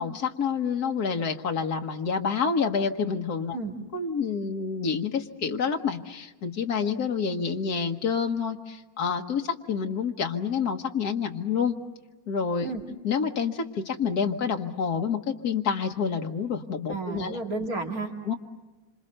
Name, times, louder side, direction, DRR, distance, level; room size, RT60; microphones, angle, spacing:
voice 1, 0.0-3.6 3.9-11.8 12.3-12.7 13.0-17.4 18.3-18.4, left 6 dB, 85° left, 3 dB, 1.8 m, -28 dB
voice 2, 16.9-18.1, right 3 dB, 70° right, 2 dB, 3.1 m, -32 dB
27.0 x 26.5 x 6.6 m, 1.2 s
omnidirectional pair, 1.6 m